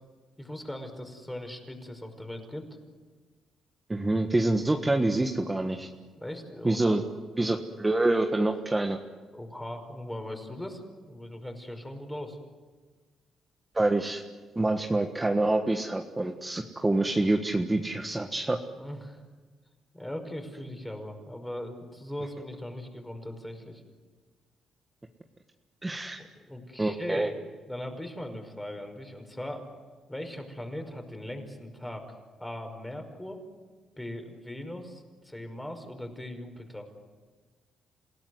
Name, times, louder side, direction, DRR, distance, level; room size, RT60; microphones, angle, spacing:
voice 1, 0.4-2.7 6.2-7.0 9.3-12.4 18.7-19.2 19.9-23.8 26.2-27.4 27.7-29.7 30.1-32.1 32.4-33.4 34.0-36.9, left 1 dB, 10° left, 5 dB, 5.4 m, -39 dB
voice 2, 3.9-5.9 6.6-7.0 7.4-9.0 13.7-14.2 14.5-18.6 25.8-26.2 26.8-27.3, right 2 dB, 15° right, 4 dB, 1.5 m, -26 dB
28.5 x 17.0 x 9.5 m, 1.4 s
cardioid pair, 90°, 0 cm